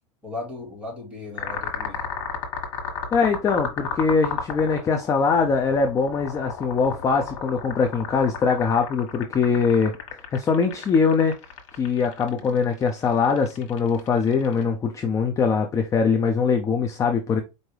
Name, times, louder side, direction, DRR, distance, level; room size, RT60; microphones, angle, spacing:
voice 1, 0.2-2.0 12.2-12.6, left 2 dB, 5° right, 2.0 m, -37 dB
sound 1, 1.4-14.6, left 6 dB, 75° left, 1.3 m, -33 dB
voice 2, 3.1-9.9 10.3-11.3 11.7-17.4, left 5 dB, 20° left, 0.5 m, -22 dB
4.6 x 2.6 x 3.2 m
supercardioid pair, 135°, 16 cm